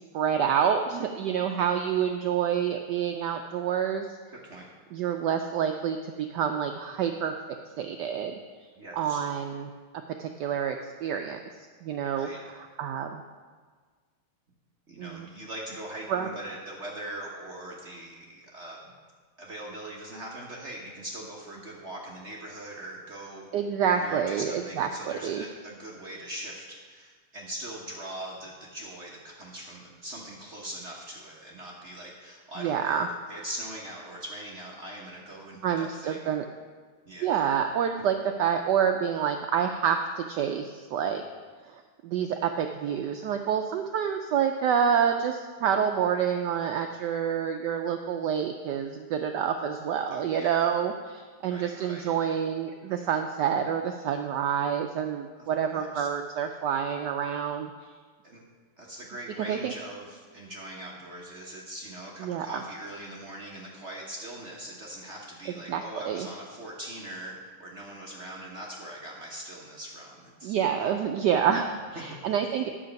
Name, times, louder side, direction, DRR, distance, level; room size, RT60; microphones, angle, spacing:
voice 1, 0.1-4.1 4.9-7.3 7.8-8.4 8.9-9.7 10.2-11.4 11.8-13.2 15.0-15.3 16.1-16.3 23.5-25.4 32.6-33.1 35.6-36.4 37.2-41.2 41.6-57.7 59.5-59.7 62.2-62.6 65.7-66.3 70.4-72.7, right 8 dB, 85° right, 5 dB, 0.9 m, -28 dB
voice 2, 4.3-4.7 8.8-9.2 12.1-12.4 14.9-18.8 19.4-23.5 23.9-36.3 37.0-37.3 50.1-50.6 51.4-52.1 55.7-56.1 58.2-58.4 58.8-70.5 71.9-72.0, right 1 dB, 40° right, -2 dB, 1.1 m, -41 dB
10.0 x 7.6 x 5.2 m, 1.5 s
omnidirectional pair, 2.4 m